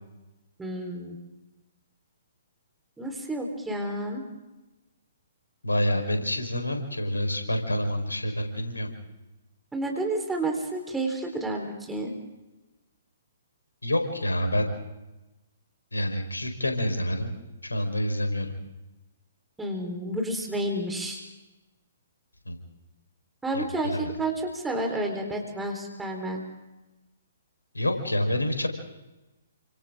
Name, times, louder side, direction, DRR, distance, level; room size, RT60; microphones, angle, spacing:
voice 1, 0.6-1.2 3.0-4.2 9.7-12.1 19.6-21.2 23.4-26.4, right 1 dB, 5° right, 2 dB, 4.2 m, -30 dB
voice 2, 5.6-8.9 13.8-14.7 15.9-17.3 17.6-18.5 22.4-22.6 23.5-24.0 27.7-28.7, left 1 dB, 80° left, 6 dB, 4.5 m, -27 dB
29.5 x 26.5 x 3.8 m, 1.0 s
figure-of-eight pair, 125°, 0 cm